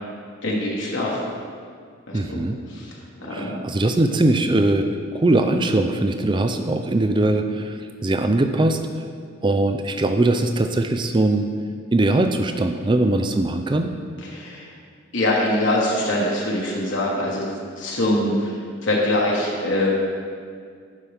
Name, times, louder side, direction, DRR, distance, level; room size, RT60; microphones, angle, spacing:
voice 1, 0.4-1.2 2.1-2.4 2.7-2.9 3.2-3.6 14.2-14.7 15.1-17.5 17.8-18.5 18.8-19.9, left 1 dB, 65° left, -4 dB, 1.3 m, -23 dB
voice 2, 2.1-2.6 3.3-4.9 5.1-8.8 9.4-11.5 11.9-13.9, right 2 dB, 25° right, 7 dB, 0.4 m, -21 dB
11.0 x 5.7 x 3.5 m, 2.1 s
head